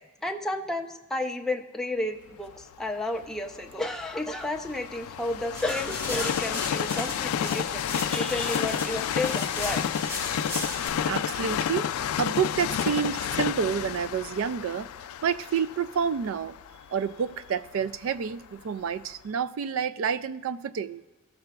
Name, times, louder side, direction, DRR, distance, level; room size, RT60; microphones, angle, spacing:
voice 1, 0.2-9.8, left 2 dB, ahead, 1 dB, 0.4 m, -32 dB
Train, 2.5-18.4 19.0-19.1, left 9 dB, 85° left, 0.3 m, -31 dB
sound 1, 5.5-10.9, left 1 dB, 15° right, 1.1 m, -37 dB
voice 2, 10.8-11.9 12.2-14.9 15.2-16.6 16.9-21.0, right 7 dB, 70° right, 15 dB, 0.3 m, -29 dB
15.0 x 6.7 x 2.3 m, 1.2 s
head